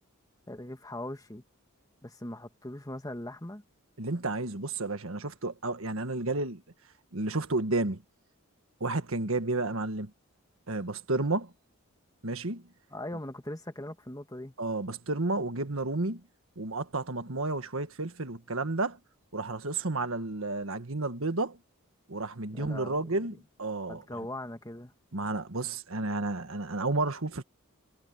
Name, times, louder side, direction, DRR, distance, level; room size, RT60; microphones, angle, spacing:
voice 1, 0.5-1.4 2.0-3.6 12.9-14.5 22.5-23.1 23.9-24.9, left 1 dB, 15° left, 1.7 m, -40 dB
voice 2, 4.0-6.6 7.1-8.0 8.8-10.1 10.7-11.5 12.2-12.6 14.6-16.2 16.5-19.0 19.3-21.6 22.1-24.2 25.1-27.4, right 2 dB, 65° right, 1.6 m, -31 dB
head